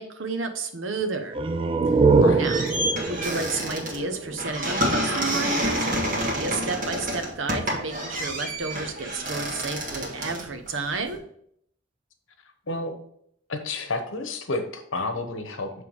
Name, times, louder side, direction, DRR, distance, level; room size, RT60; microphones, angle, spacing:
voice 1, 0.0-1.4 2.4-2.6 3.1-11.2, right 3 dB, 70° right, 7 dB, 0.8 m, -31 dB
sound 1, 1.3-4.9, right 4 dB, 25° right, 0.3 m, -23 dB
voice 2, 2.1-2.5 12.7-12.9 13.5-15.8, left 2 dB, 85° left, 6 dB, 0.9 m, -30 dB
sound 2, 2.1-11.2, equal, 45° right, 1.5 m, -29 dB
7.0 x 3.3 x 4.7 m, 0.68 s
head